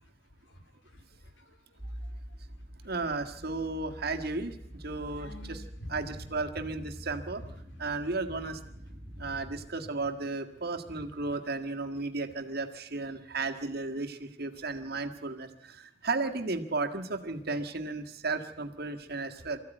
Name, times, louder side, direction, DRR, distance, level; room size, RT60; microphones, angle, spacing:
voice 1, 0.9-1.4 1.8-2.1 5.1-6.3 6.6-6.7 7.3-7.8 8.3-8.4 9.1-9.4 9.8-9.9 19.4-19.5, equal, 75° left, 7 dB, 3.1 m, -48 dB
sound 1, 1.8-9.7, equal, 25° right, 1.5 m, -45 dB
voice 2, 2.8-5.6 5.9-7.4 7.8-8.6 9.2-19.6, right 3 dB, 55° right, 6 dB, 1.8 m, -34 dB
24.5 x 15.0 x 9.2 m, 0.83 s
head